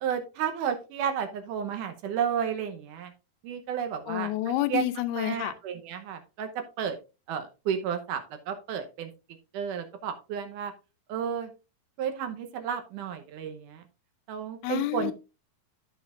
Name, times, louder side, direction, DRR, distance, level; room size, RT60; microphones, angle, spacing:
voice 1, 0.0-3.1 3.4-4.3 4.7-4.8 5.1-6.5 6.8-7.0 7.3-8.2 8.5-9.1 9.5-10.7 11.1-11.5 12.0-13.8 14.3-15.1, right 8 dB, 70° right, 6 dB, 2.1 m, -32 dB
voice 2, 4.1-5.5 14.6-15.1, left 14 dB, 90° left, 11 dB, 2.7 m, -29 dB
13.5 x 5.8 x 2.5 m, 0.30 s
omnidirectional pair, 4.5 m